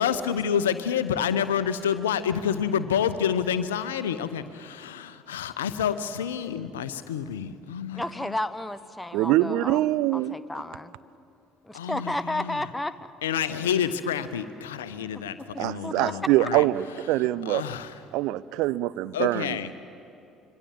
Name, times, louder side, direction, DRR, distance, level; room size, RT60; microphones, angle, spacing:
voice 1, 0.0-8.4 11.7-12.6 13.2-16.7 17.2-18.0 19.1-19.7, left 8 dB, 75° left, 13 dB, 0.9 m, -28 dB
voice 2, 7.9-9.8 10.1-10.9 11.6-13.1 15.1-15.2 15.8-16.1, left 1 dB, 10° left, 13 dB, 1.0 m, -32 dB
voice 3, 9.1-10.4 15.6-17.6 18.1-19.6, right 15 dB, 60° right, 16 dB, 0.6 m, -24 dB
25.5 x 23.5 x 7.6 m, 2.7 s
figure-of-eight pair, 55°, 0 cm